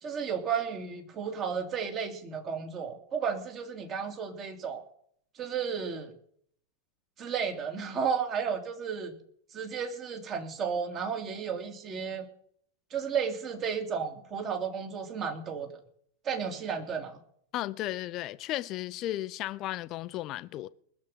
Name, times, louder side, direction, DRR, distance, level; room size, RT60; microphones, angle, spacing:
voice 1, 0.0-4.9 5.4-6.1 7.2-9.1 9.5-12.3 12.9-15.8 16.2-17.2, right 6 dB, 30° right, 2.5 m, -33 dB
voice 2, 17.5-20.7, left 15 dB, 35° left, 0.6 m, -34 dB
20.0 x 7.3 x 7.1 m
figure-of-eight pair, 90°, 0 cm